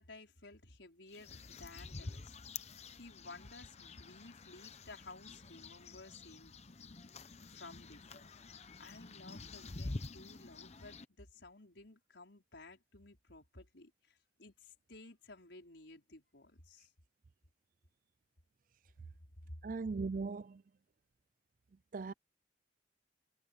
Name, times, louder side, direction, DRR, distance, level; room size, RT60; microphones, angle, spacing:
voice 1, 0.0-2.4 2.9-6.5 7.5-16.9 19.5-19.6, left 2 dB, 80° left, 5.1 m, -55 dB
sound 1, 1.1-11.1, left 3 dB, 35° left, 0.9 m, -48 dB
voice 2, 19.6-20.6 21.9-22.1, right 4 dB, 45° right, 0.4 m, -38 dB
head